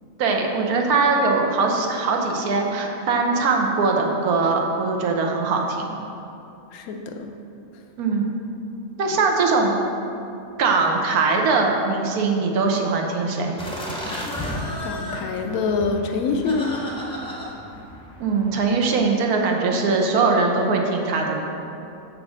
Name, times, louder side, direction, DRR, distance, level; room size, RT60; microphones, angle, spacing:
voice 1, 0.2-6.0 8.0-8.4 9.0-9.7 10.6-13.6 18.2-21.5, right 4 dB, 85° right, 1 dB, 1.3 m, -21 dB
voice 2, 6.7-7.4 14.8-16.8, left 4 dB, 80° left, 4 dB, 1.1 m, -25 dB
sound 1, 13.6-18.7, left 1 dB, 5° left, 0.7 m, -33 dB
6.6 x 3.6 x 6.2 m, 2.7 s
omnidirectional pair, 1.5 m